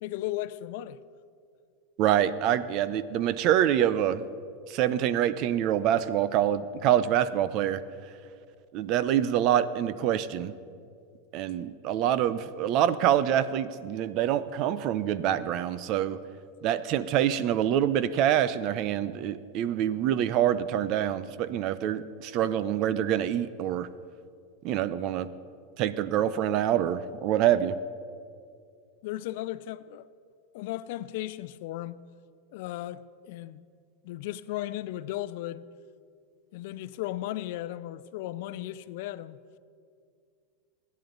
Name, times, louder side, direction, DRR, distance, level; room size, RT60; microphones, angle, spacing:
voice 1, 0.0-1.0 29.0-30.1 30.5-32.0 32.5-33.6 34.0-35.7 36.5-39.4, left 14 dB, 65° left, 0.5 m, -36 dB
voice 2, 2.0-4.2 4.7-7.8 8.7-10.5 11.3-16.2 16.6-23.9 24.6-25.3 25.8-27.8, right 10 dB, 50° right, 0.7 m, -26 dB
28.5 x 11.0 x 4.0 m
supercardioid pair, 125°, 0 cm